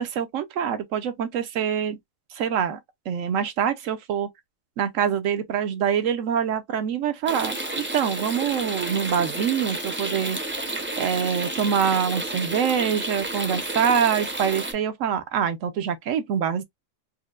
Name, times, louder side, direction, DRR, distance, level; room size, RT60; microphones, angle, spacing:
voice 1, 0.0-2.0 2.3-2.8 3.1-4.3 4.8-10.4 11.0-16.6, right 8 dB, 80° right, 1.0 m, -25 dB
sound 1, 7.3-14.7, right 2 dB, 15° right, 0.4 m, -31 dB
4.4 x 2.0 x 2.3 m
omnidirectional pair, 1.4 m